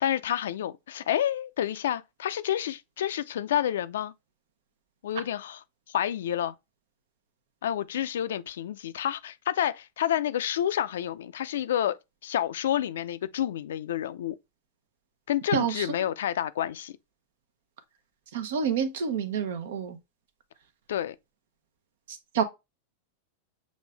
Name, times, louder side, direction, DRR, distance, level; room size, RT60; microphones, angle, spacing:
voice 1, 0.0-4.1 5.0-6.5 7.6-12.0 12.2-14.4 15.3-16.9 20.9-21.2, left 11 dB, 75° left, 0.4 m, -29 dB
voice 2, 15.5-15.9 18.3-20.0 22.1-22.4, right 7 dB, 75° right, 0.9 m, -28 dB
6.3 x 2.6 x 3.3 m
hypercardioid pair, 105°, 0 cm